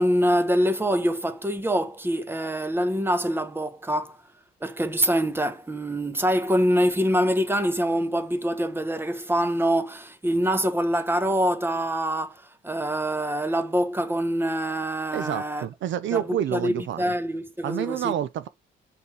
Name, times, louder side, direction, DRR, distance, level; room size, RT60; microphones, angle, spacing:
voice 1, 0.0-4.2 4.6-15.7 16.1-16.2 16.5-18.1, equal, 10° right, 1.1 m, -25 dB
voice 2, 15.1-17.1 17.6-18.5, right 11 dB, 70° right, 0.6 m, -28 dB
5.6 x 4.6 x 4.8 m
cardioid pair, 90°, 20 cm